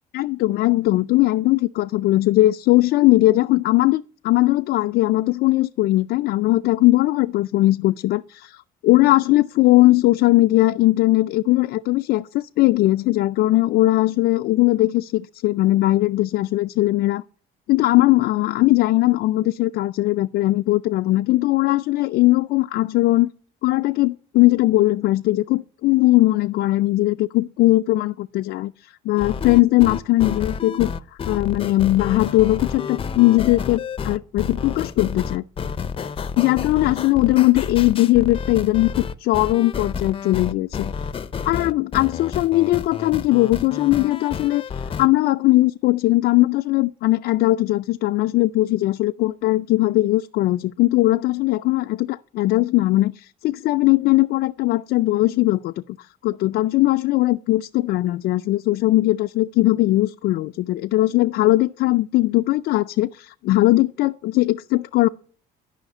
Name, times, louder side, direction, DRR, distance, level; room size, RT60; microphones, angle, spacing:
voice 1, 0.1-17.2 17.7-23.3 23.6-28.7 29.1-30.9 31.3-35.4 36.4-40.9 41.4-44.6 45.0-55.7 56.2-65.1, left 17 dB, 75° left, 0.4 m, -19 dB
sound 1, 29.2-45.1, left 6 dB, 30° left, 0.6 m, -30 dB
12.5 x 5.7 x 8.3 m
cardioid pair, 110°, 17 cm